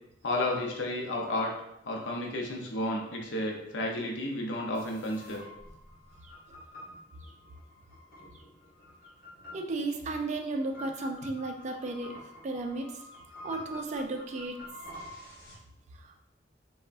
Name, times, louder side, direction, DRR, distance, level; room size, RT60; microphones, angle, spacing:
voice 1, 0.2-1.5 1.9-5.4, left 1 dB, 90° left, 0 dB, 0.6 m, -32 dB
sound 1, 4.7-15.6, left 1 dB, 55° left, 0.8 m, -48 dB
voice 2, 9.5-12.1 12.4-13.0 13.4-14.6 16.0-16.1, right 2 dB, 40° right, 4 dB, 0.3 m, -34 dB
3.3 x 2.1 x 2.4 m, 0.83 s
head